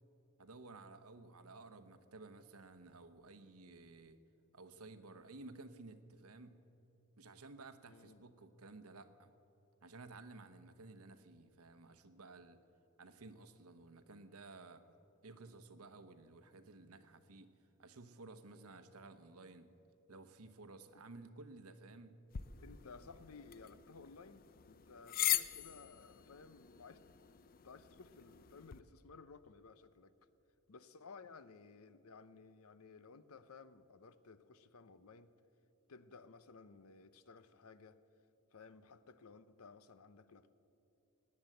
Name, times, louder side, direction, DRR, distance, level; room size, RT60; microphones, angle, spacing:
voice 1, 0.4-4.2 4.5-6.6 7.2-9.3 9.8-12.6 13.0-14.9 15.2-17.5 17.8-19.7 20.1-22.2, right 3 dB, 80° right, 1.0 m, -55 dB
voice 2, 7.8-8.2 22.6-27.1 27.6-30.1 30.7-35.3 35.9-38.0 38.5-40.5, left 4 dB, 75° left, 0.7 m, -57 dB
sound 1, 22.3-28.8, left 12 dB, 40° left, 0.5 m, -42 dB
18.5 x 9.8 x 7.8 m
head